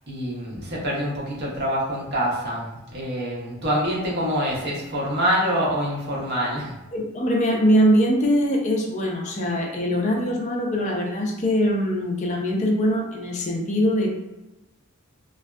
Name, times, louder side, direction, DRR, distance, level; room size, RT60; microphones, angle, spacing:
voice 1, 0.1-6.8, equal, 50° right, -4 dB, 0.7 m, -26 dB
voice 2, 6.9-14.1, equal, 35° left, 1 dB, 0.4 m, -22 dB
2.5 x 2.2 x 2.2 m, 1.0 s
head